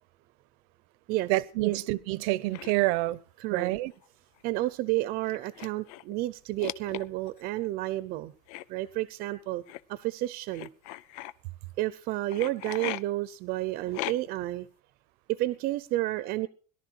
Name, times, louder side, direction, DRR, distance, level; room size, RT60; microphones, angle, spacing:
voice 1, 1.3-3.2 3.5-3.9, right 19 dB, 80° right, 0.8 m, -27 dB
sound 1, 2.5-2.8 3.9-4.1 4.4-4.5 5.3-6.1 6.6-7.4 8.5-8.6 9.7-9.8 10.5-11.3 12.3-13.0 13.9-14.4, left 16 dB, 90° left, 0.6 m, -38 dB
voice 2, 3.4-3.7 4.4-8.3 8.7-9.6 9.9-10.7 11.8-14.7 15.3-16.5, right 16 dB, 55° right, 0.7 m, -31 dB
18.0 x 11.5 x 4.6 m
cardioid pair, 165°, 18 cm